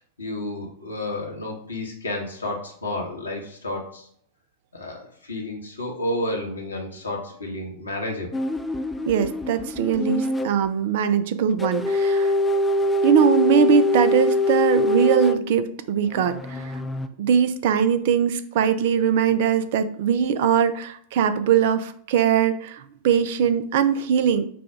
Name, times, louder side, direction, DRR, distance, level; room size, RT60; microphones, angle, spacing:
voice 1, 0.2-4.1 4.7-8.3, left 1 dB, 75° left, 0 dB, 1.2 m, -31 dB
sound 1, 8.3-10.5 11.6-15.4 16.1-17.1, left 1 dB, 10° left, 0.4 m, -23 dB
voice 2, 9.1-12.3 13.0-16.7 17.2-24.4, right 7 dB, 55° right, 11 dB, 0.4 m, -21 dB
4.8 x 2.3 x 4.8 m, 0.62 s
figure-of-eight pair, 90°, 0 cm